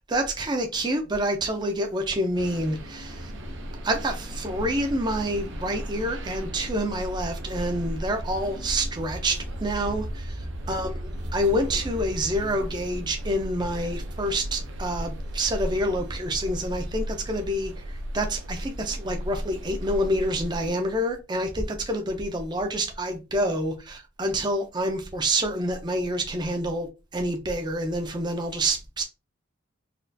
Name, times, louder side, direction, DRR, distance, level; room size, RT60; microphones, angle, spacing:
voice 1, 0.1-3.3 3.8-10.4 10.7-29.0, right 1 dB, 20° right, 0.5 m, -27 dB
sound 1, 2.4-20.7, equal, 70° right, 0.6 m, -35 dB
4.1 x 2.4 x 2.6 m
head